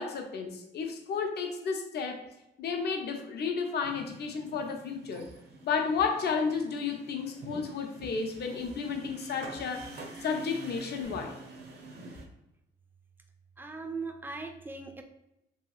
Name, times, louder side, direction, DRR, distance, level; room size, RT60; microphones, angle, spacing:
voice 1, 0.0-2.2 2.6-5.3 5.6-9.9 10.2-11.4, left 5 dB, 55° left, 4 dB, 0.6 m, -32 dB
sound 1, 3.8-12.2, right 2 dB, 60° right, 0.6 m, -47 dB
voice 2, 13.6-15.0, right 4 dB, 10° right, 5 dB, 0.3 m, -39 dB
2.8 x 2.8 x 2.3 m, 0.87 s
cardioid pair, 90°, 20 cm